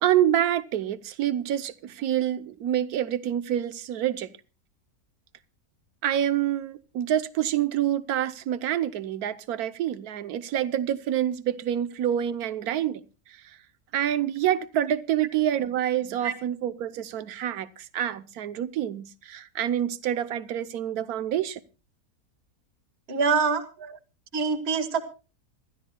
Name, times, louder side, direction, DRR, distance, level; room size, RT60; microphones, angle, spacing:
voice 1, 0.0-4.3 6.0-13.0 13.9-21.6 23.8-24.0, right 11 dB, 75° right, 1.3 m, -27 dB
voice 2, 23.1-23.6 24.3-25.0, right 5 dB, 45° right, 1.7 m, -24 dB
26.5 x 13.0 x 2.2 m
omnidirectional pair, 1.6 m